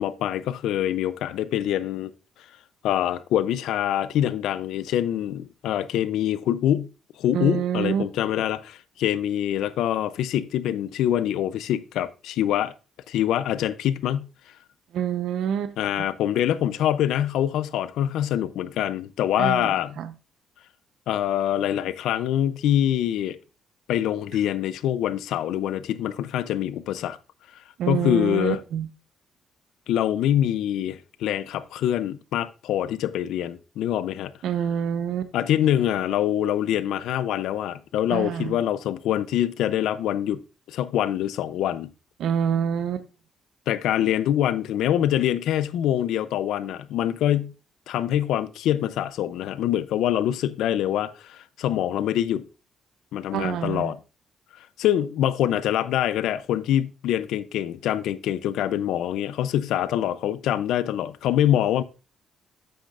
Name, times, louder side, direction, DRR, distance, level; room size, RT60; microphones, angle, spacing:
voice 1, 0.0-2.1 2.8-6.9 7.2-12.7 13.1-14.3 15.8-20.0 21.1-23.4 23.9-27.2 27.9-28.6 29.9-34.3 35.3-40.4 40.7-41.9 43.7-47.5 47.9-52.5 53.1-54.0 54.8-61.8, left 11 dB, 85° left, 0.5 m, -25 dB
voice 2, 7.3-8.0 14.9-16.1 19.4-20.1 27.8-28.9 34.4-35.3 38.1-38.6 42.2-43.1 53.3-53.9, right 9 dB, 80° right, 0.7 m, -27 dB
8.5 x 7.8 x 2.5 m
cardioid pair, 90°, 0 cm